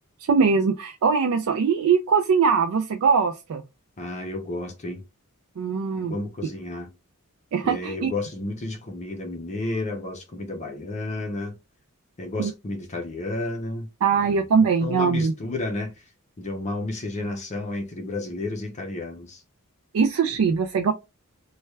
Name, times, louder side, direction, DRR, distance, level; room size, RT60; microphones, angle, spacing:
voice 1, 0.3-3.6 5.6-6.2 7.5-8.1 12.4-12.5 14.0-15.3 19.9-20.9, right 5 dB, 70° right, 0.4 m, -21 dB
voice 2, 4.0-5.0 6.0-6.9 7.6-11.6 12.2-13.9 14.2-14.4 14.8-15.9 16.4-19.4, left 2 dB, 30° left, 0.6 m, -31 dB
3.2 x 2.3 x 3.1 m
head